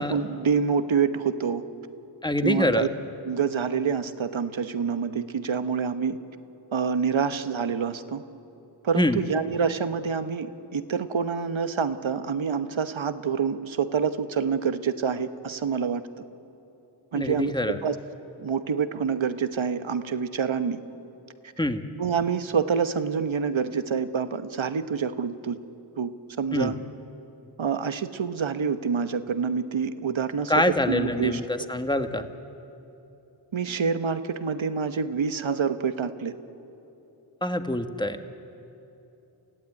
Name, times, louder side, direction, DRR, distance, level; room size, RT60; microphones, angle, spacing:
voice 1, 0.0-1.6 2.4-2.9 3.2-6.2 6.7-8.2 8.8-16.0 17.1-18.0 18.4-20.8 22.0-25.6 26.0-26.1 26.4-26.7 27.6-30.5 30.9-31.4 33.5-36.3, right 6 dB, 70° right, 11 dB, 1.1 m, -27 dB
voice 2, 2.2-2.9 8.9-9.2 17.1-17.8 21.6-21.8 26.5-26.7 30.5-32.3 37.4-38.2, left 1 dB, 10° left, 7 dB, 1.5 m, -25 dB
29.0 x 15.0 x 9.7 m, 3.0 s
cardioid pair, 45°, 48 cm